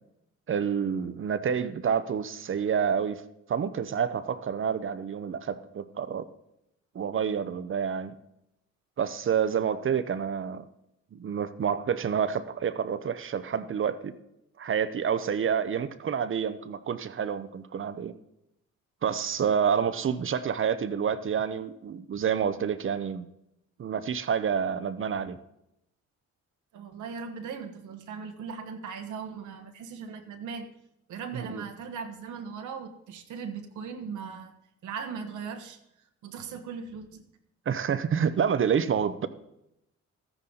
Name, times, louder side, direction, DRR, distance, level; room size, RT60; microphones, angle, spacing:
voice 1, 0.5-3.2 3.5-6.3 6.9-8.1 9.0-10.7 11.1-14.1 14.6-18.1 19.0-23.3 23.8-25.4 31.3-31.6 37.7-39.3, right 7 dB, 45° right, 12 dB, 0.8 m, -28 dB
voice 2, 26.7-30.7 31.1-34.5 34.8-35.8 36.2-37.3, right 6 dB, 75° right, 5 dB, 1.2 m, -38 dB
13.5 x 9.9 x 3.9 m, 0.83 s
cardioid pair, 90°, 30 cm